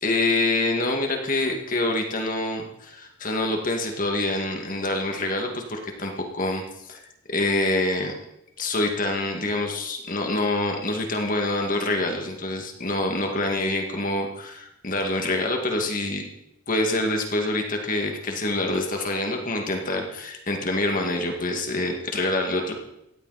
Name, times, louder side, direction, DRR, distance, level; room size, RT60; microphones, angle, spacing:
voice 1, 0.0-7.0 7.3-8.1 8.6-16.3 16.7-22.7, left 2 dB, 40° left, 2 dB, 2.2 m, -26 dB
17.5 x 14.0 x 4.3 m, 0.83 s
head